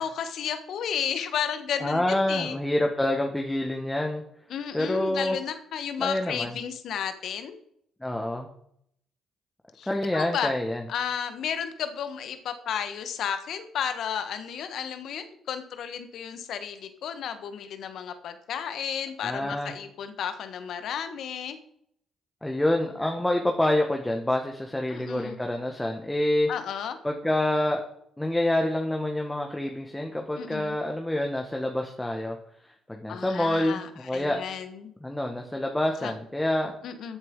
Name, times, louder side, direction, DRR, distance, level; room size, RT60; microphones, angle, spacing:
voice 1, 0.0-2.6 4.5-7.6 9.8-10.5 10.9-21.6 24.9-25.4 26.5-27.0 30.4-30.7 33.1-34.9 36.0-36.1 36.8-37.2, left 8 dB, 65° left, 9 dB, 1.4 m, -33 dB
voice 2, 1.8-4.2 4.7-5.4 6.0-6.6 8.0-8.5 9.9-10.8 19.2-19.7 22.4-26.5 27.0-27.8 28.2-32.4 32.6-34.4 35.0-36.7, left 1 dB, 10° left, 2 dB, 1.8 m, -27 dB
14.0 x 8.0 x 3.9 m, 0.69 s
hypercardioid pair, 45°, 0 cm